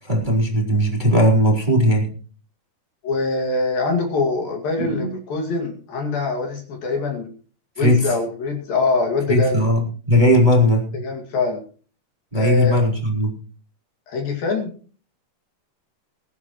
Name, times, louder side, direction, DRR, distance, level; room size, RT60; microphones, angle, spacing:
voice 1, 0.0-2.1 4.8-5.1 7.8-8.1 9.3-11.0 12.3-13.3, equal, 10° right, -2 dB, 3.2 m, -18 dB
voice 2, 3.0-7.3 7.8-9.7 10.9-11.6 12.3-12.8 14.1-14.7, left 3 dB, 60° left, 2 dB, 3.8 m, -23 dB
22.5 x 11.5 x 3.1 m, 0.41 s
omnidirectional pair, 5.0 m